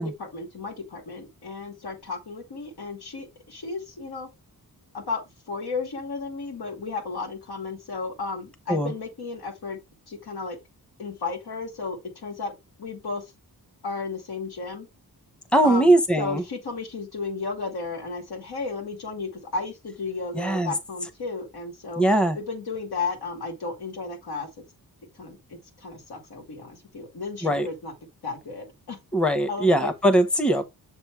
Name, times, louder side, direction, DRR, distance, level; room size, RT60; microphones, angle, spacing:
voice 1, 0.0-4.3 4.9-5.2 5.5-9.8 10.1-10.6 11.0-12.5 12.8-13.2 13.8-14.9 15.6-22.0 22.3-24.5 25.2-27.9 28.2-29.0 29.5-29.9, left 4 dB, 85° left, 2.4 m, -34 dB
voice 2, 15.5-16.4 20.3-20.7 22.0-22.4 27.4-27.7 29.1-30.6, right 1 dB, 5° left, 0.8 m, -21 dB
7.0 x 3.2 x 4.6 m
wide cardioid pair, 130°, 37 cm